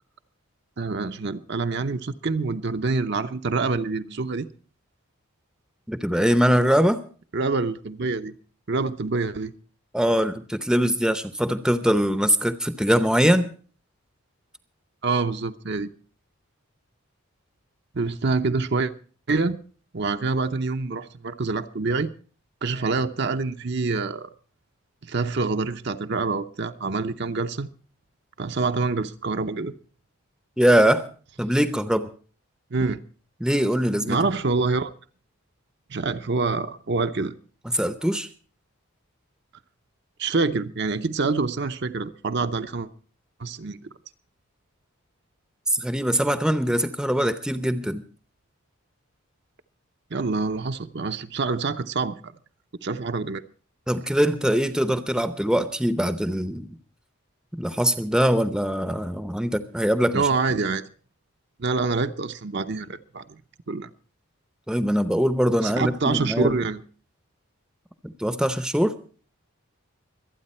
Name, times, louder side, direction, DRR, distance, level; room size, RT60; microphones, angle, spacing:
voice 1, 0.8-4.5 7.3-8.3 8.7-9.5 15.0-15.9 17.9-18.9 19.3-19.6 19.9-22.1 22.6-24.3 25.0-27.7 28.4-29.7 32.7-33.0 34.1-34.9 35.9-37.3 40.2-42.9 43.4-43.8 50.1-52.3 52.8-53.4 60.1-60.8 61.6-63.4 63.7-63.9 65.6-66.8, right 3 dB, 50° right, 0.7 m, -26 dB
voice 2, 5.9-7.0 9.9-13.5 30.6-31.0 31.4-32.1 33.4-34.2 37.7-38.3 45.7-48.0 53.9-56.8 57.6-60.3 64.7-66.6 68.0-68.9, equal, 5° right, 0.7 m, -22 dB
24.5 x 9.2 x 4.3 m
head